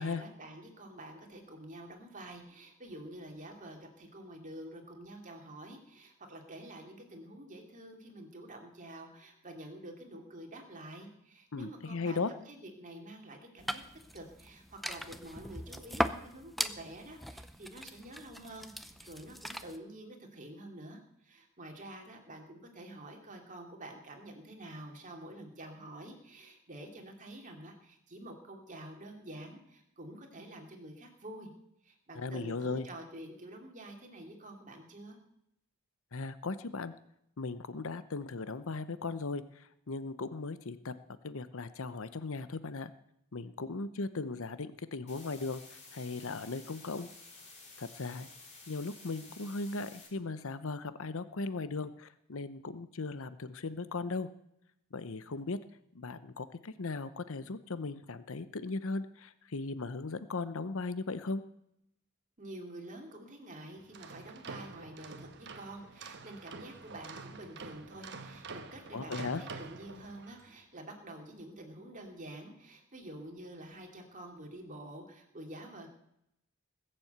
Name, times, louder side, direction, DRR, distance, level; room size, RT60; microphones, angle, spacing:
voice 1, 0.0-13.8 14.1-31.5 31.8-35.2 62.4-75.9, right 1 dB, 35° right, 2 dB, 2.9 m, -48 dB
voice 2, 11.5-12.3 32.1-32.9 36.1-36.9 37.4-41.0 41.2-42.9 43.3-45.6 45.9-47.1 47.8-48.3 48.7-54.3 54.9-55.6 55.9-61.4 68.9-69.4, left 3 dB, 60° left, 13 dB, 0.8 m, -37 dB
sound 1, 13.6-19.8, equal, ahead, 0.6 m, -39 dB
sound 2, 45.1-50.1, left 3 dB, 30° left, 4.1 m, -53 dB
sound 3, 63.8-70.5, right 4 dB, 50° right, 1.2 m, -47 dB
20.5 x 7.7 x 8.1 m, 0.78 s
head